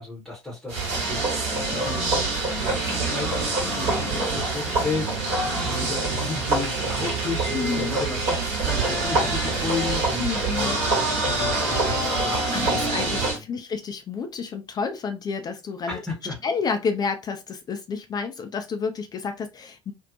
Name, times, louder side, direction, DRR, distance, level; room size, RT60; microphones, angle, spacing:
voice 1, 0.0-2.6 2.9-13.0 13.3-13.4 15.9-16.4, left 3 dB, 5° left, 0.9 m, -34 dB
sound 1, 0.7-13.4, right 3 dB, 55° right, 1.1 m, -25 dB
voice 2, 2.9-3.3 3.6-4.0 4.2-4.3 7.5-7.9 10.2-10.8 12.2-16.0 16.4-19.9, left 5 dB, 30° left, 0.4 m, -30 dB
sound 2, 5.0-6.0 7.0-12.4, equal, 70° left, 0.8 m, -40 dB
2.6 x 2.1 x 2.6 m
figure-of-eight pair, 60°, 14 cm